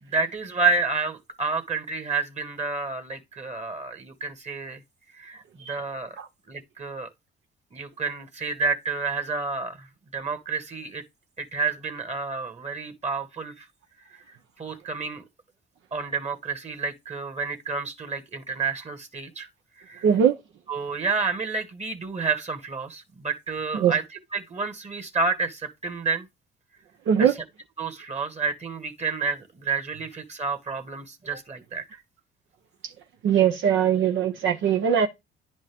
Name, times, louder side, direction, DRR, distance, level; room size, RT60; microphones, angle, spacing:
voice 1, 0.0-4.8 5.2-6.2 6.5-7.1 7.7-9.9 10.1-11.0 11.4-13.7 14.6-15.2 15.9-19.5 19.8-20.1 20.7-24.0 24.3-26.3 27.2-27.3 27.8-31.8, right 4 dB, 35° right, 1.8 m, -29 dB
voice 2, 20.0-20.4 23.7-23.9 27.1-27.3 33.2-35.1, right 8 dB, 75° right, 0.9 m, -21 dB
10.0 x 5.1 x 3.6 m
cardioid pair, 90°, 20 cm